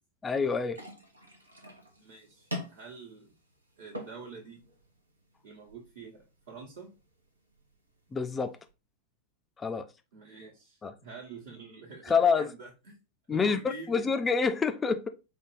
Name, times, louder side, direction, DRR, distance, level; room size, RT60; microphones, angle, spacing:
voice 1, 0.2-0.8 8.1-8.6 9.6-9.9 10.8-10.9 12.1-12.5 13.3-13.6 13.9-15.1, left 5 dB, 15° left, 0.5 m, -27 dB
sound 1, 0.7-8.7, equal, 80° right, 0.8 m, -46 dB
voice 2, 2.0-3.3 3.8-4.7 5.4-6.9 10.1-13.0 13.3-14.1, right 4 dB, 60° right, 1.1 m, -46 dB
4.7 x 2.4 x 3.6 m
figure-of-eight pair, 90°, 0 cm